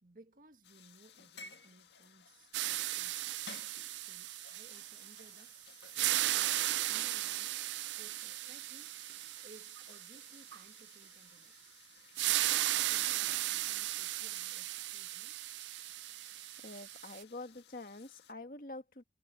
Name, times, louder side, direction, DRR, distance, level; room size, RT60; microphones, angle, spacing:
voice 1, 0.0-3.4 3.9-5.6 6.1-8.9 9.4-11.8 12.2-15.4 17.2-17.3, right 2 dB, 45° right, 1.8 m, -61 dB
sound 1, 0.6-18.3, left 6 dB, 70° left, 1.8 m, -59 dB
sound 2, 2.5-5.5 5.8-10.6 12.2-17.2, right 15 dB, 75° right, 0.4 m, -36 dB
sound 3, 3.8-13.8, left 5 dB, 35° left, 7.7 m, -75 dB
voice 2, 16.6-19.0, left 2 dB, 50° left, 1.6 m, -46 dB
head